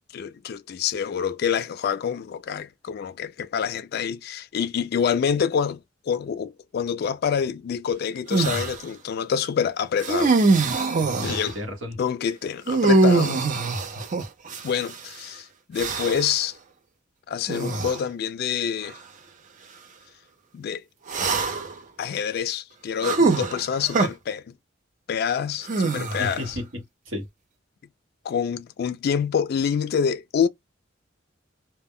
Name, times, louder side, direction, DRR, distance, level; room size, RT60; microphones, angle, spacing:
voice 1, 0.1-10.3 10.8-10.9 11.2-11.5 12.0-13.4 14.6-16.6 17.3-19.0 20.5-20.8 22.0-24.5 25.1-26.6 28.2-30.5, left 7 dB, 55° left, 0.3 m, -27 dB
sound 1, 8.3-8.8 10.0-11.5 12.7-15.0 15.8-16.4 17.5-18.0 18.8-19.0 21.1-21.8 23.0-24.1 25.6-26.5, right 3 dB, 40° right, 0.5 m, -23 dB
voice 2, 11.0-12.0 26.2-27.2, left 1 dB, 75° right, 1.0 m, -33 dB
2.1 x 2.1 x 3.6 m
head